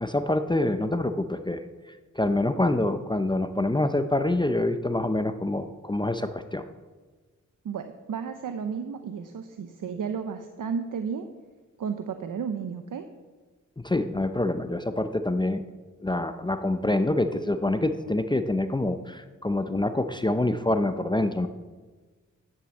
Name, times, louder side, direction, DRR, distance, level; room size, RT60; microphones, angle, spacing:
voice 1, 0.0-1.6 2.2-6.6 13.8-15.6 16.0-21.5, left 2 dB, 15° left, 9 dB, 0.6 m, -26 dB
voice 2, 7.6-11.3 11.8-13.1, right 6 dB, 85° right, 8 dB, 0.7 m, -33 dB
10.0 x 7.9 x 7.7 m, 1.3 s
wide cardioid pair, 80°, 31 cm